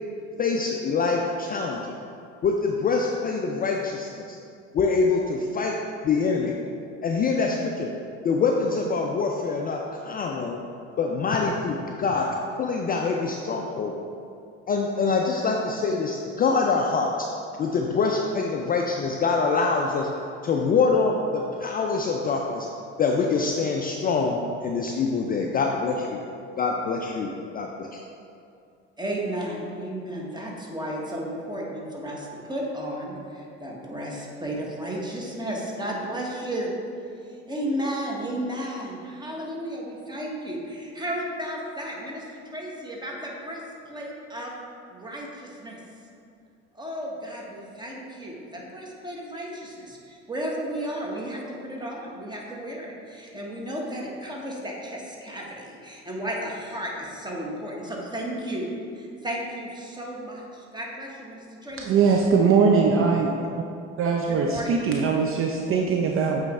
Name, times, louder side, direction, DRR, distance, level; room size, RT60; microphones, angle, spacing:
voice 1, 0.4-1.8 2.4-4.4 4.7-5.8 6.0-6.6 7.0-7.9 8.2-10.6 11.0-12.3 12.6-13.9 14.7-17.1 17.6-20.1 20.4-22.7 23.0-26.2 26.6-28.0, left 4 dB, 25° left, 1 dB, 0.4 m, -25 dB
voice 2, 29.0-36.7 37.2-44.5 44.9-45.8 46.7-62.0 64.3-64.7, right 1 dB, 10° right, -2 dB, 1.3 m, -33 dB
voice 3, 61.9-63.3 64.0-66.4, right 5 dB, 40° right, 1 dB, 0.5 m, -21 dB
8.2 x 3.2 x 3.6 m, 2.5 s
hypercardioid pair, 65°, 36 cm